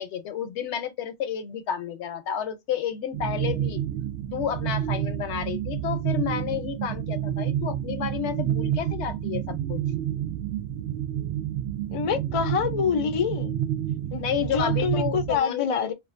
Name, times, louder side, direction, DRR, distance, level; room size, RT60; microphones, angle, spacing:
voice 1, 0.0-3.8 4.3-9.8 14.2-15.9, left 9 dB, 80° left, 0.9 m, -31 dB
sound 1, 3.1-15.4, right 11 dB, 90° right, 0.9 m, -29 dB
voice 2, 11.9-13.6 14.1-15.9, left 7 dB, 55° left, 0.3 m, -26 dB
2.5 x 2.4 x 2.4 m
omnidirectional pair, 1.1 m